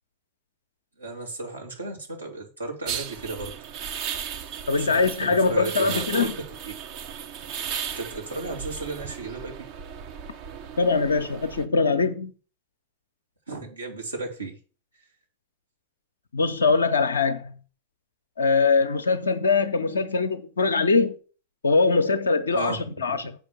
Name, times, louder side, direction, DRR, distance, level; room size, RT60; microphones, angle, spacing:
voice 1, 1.0-3.6 4.8-6.3 8.0-9.7 13.5-14.6 22.5-22.8 23.1-23.2, right 3 dB, 80° right, 2.6 m, -34 dB
sound 1, 2.9-11.6, right 8 dB, 45° right, 0.9 m, -36 dB
voice 2, 4.7-6.4 10.8-12.3 16.3-17.5 18.4-21.2 21.6-23.3, left 4 dB, 70° left, 0.7 m, -22 dB
7.4 x 5.1 x 7.1 m
figure-of-eight pair, 90°, 0 cm